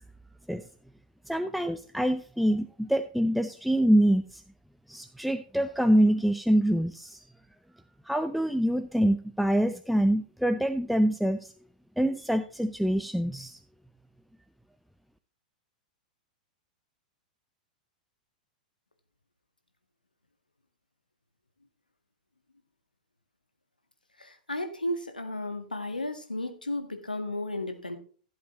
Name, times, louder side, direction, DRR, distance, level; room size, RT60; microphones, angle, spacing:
voice 1, 1.3-4.4 4.9-7.2 8.1-11.5 12.0-13.6, right 1 dB, ahead, 9 dB, 0.6 m, -25 dB
voice 2, 24.2-28.0, left 1 dB, 90° left, 7 dB, 1.7 m, -34 dB
15.5 x 7.8 x 3.1 m, 0.42 s
figure-of-eight pair, 100°, 4 cm